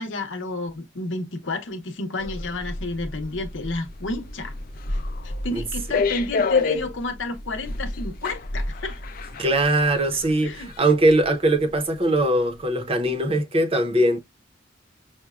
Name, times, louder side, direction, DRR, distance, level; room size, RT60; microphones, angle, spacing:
voice 1, 0.0-4.5 4.9-5.0 5.2-9.0 10.4-10.7, left 2 dB, 85° left, 0.9 m, -31 dB
sound 1, 2.2-11.3 11.6-11.8, left 4 dB, 50° left, 0.5 m, -29 dB
voice 2, 9.4-14.2, right 1 dB, 30° right, 0.7 m, -21 dB
5.8 x 2.1 x 2.3 m
head